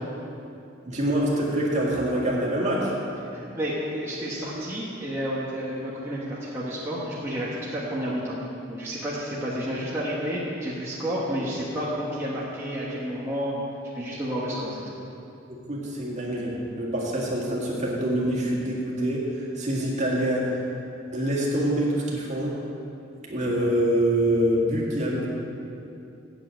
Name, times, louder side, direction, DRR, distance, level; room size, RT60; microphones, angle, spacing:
voice 1, 0.9-2.9 14.5-14.6 15.5-20.6 21.1-22.5 23.2-25.3, right 1 dB, 40° right, -4 dB, 2.0 m, -25 dB
voice 2, 3.3-8.4 8.7-13.5 13.9-14.9, equal, 15° right, -8 dB, 1.3 m, -30 dB
8.2 x 7.7 x 7.7 m, 2.7 s
head